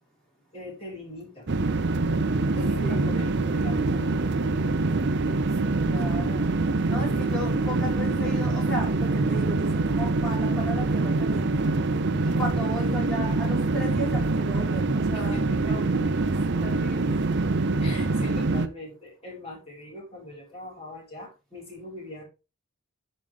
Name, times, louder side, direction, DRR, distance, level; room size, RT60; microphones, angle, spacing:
voice 1, 0.5-1.5 2.5-4.2 5.2-5.8 6.9-7.3 12.1-12.5 15.1-15.8 17.8-22.2, left 1 dB, 25° left, -3 dB, 4.7 m, -41 dB
sound 1, 1.5-18.7, right 3 dB, 50° right, 0.6 m, -25 dB
voice 2, 2.8-3.4 5.6-6.5 6.9-11.7 12.2-15.8 16.2-16.3 16.6-17.2, equal, 5° left, -4 dB, 4.5 m, -36 dB
10.5 x 5.1 x 3.5 m, 0.29 s
head